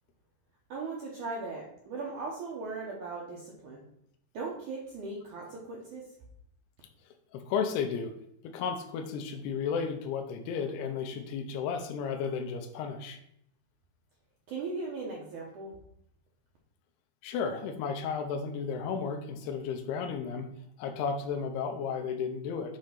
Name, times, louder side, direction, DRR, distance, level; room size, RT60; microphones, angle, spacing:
voice 1, 0.7-3.8 4.3-6.0 14.5-15.7, right 3 dB, 80° right, -3 dB, 1.7 m, -38 dB
voice 2, 7.3-8.1 8.4-13.2 17.2-20.5 20.8-22.8, left 6 dB, 80° left, 6 dB, 2.5 m, -33 dB
8.2 x 3.4 x 5.7 m, 0.72 s
omnidirectional pair, 5.2 m